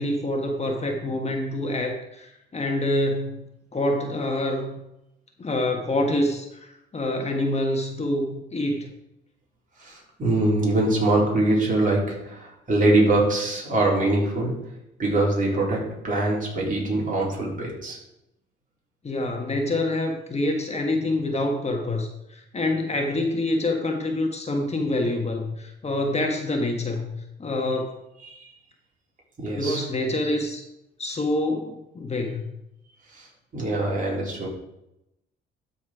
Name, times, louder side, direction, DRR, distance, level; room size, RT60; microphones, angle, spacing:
voice 1, 0.0-3.5 3.7-4.8 5.4-8.9 19.0-27.1 27.4-28.0 29.5-30.6 31.0-32.5, left 1 dB, 35° left, 3 dB, 1.4 m, -26 dB
voice 2, 9.8-14.6 15.0-18.0 28.2-28.5 29.4-29.9 33.1-34.5, right 2 dB, 40° right, -3 dB, 3.7 m, -23 dB
12.5 x 4.4 x 4.9 m, 0.86 s
cardioid pair, 90°, 20 cm